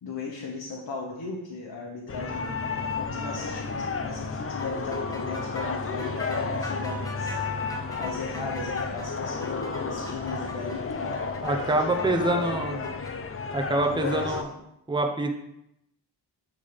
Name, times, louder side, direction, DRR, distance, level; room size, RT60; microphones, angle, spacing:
voice 1, 0.0-7.7 8.0-13.0 13.8-14.5, left 4 dB, 55° left, -1 dB, 1.1 m, -37 dB
sound 1, 2.1-14.4, left 4 dB, 30° left, 0.5 m, -32 dB
sound 2, 4.6-13.1, equal, 10° left, 1.3 m, -42 dB
voice 2, 11.4-12.7 13.5-14.4 14.9-15.3, right 2 dB, 10° right, 3 dB, 0.8 m, -25 dB
8.4 x 3.6 x 5.2 m, 0.82 s
wide cardioid pair, 105°, 44 cm